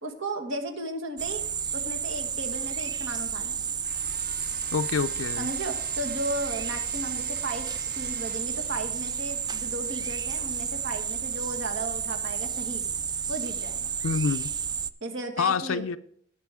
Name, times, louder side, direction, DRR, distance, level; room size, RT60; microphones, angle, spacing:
voice 1, 0.0-1.5 1.7-3.6 5.4-7.7 7.9-12.8 13.3-13.9 15.0-16.0, right 2 dB, 65° right, 3 dB, 1.7 m, -35 dB
sound 1, 1.2-14.9, right 7 dB, 20° right, 0.3 m, -31 dB
sound 2, 3.8-11.9, right 6 dB, 45° right, 1.0 m, -47 dB
voice 2, 4.7-5.5 14.0-14.5 15.4-16.0, left 5 dB, 70° left, 10 dB, 0.4 m, -27 dB
18.0 x 6.3 x 3.6 m, 0.65 s
head